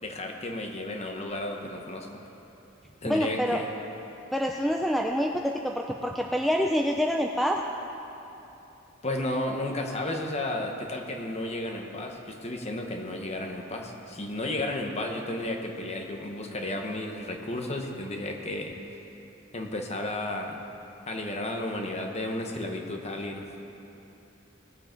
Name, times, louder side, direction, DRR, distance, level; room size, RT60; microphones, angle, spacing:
voice 1, 0.0-2.2 3.0-3.7 9.0-18.7 19.5-20.6 21.1-23.5, left 1 dB, 30° left, 3 dB, 1.1 m, -33 dB
voice 2, 3.0-3.6 4.3-7.6, equal, ahead, 1 dB, 0.4 m, -26 dB
19.0 x 7.7 x 4.5 m, 3.0 s
head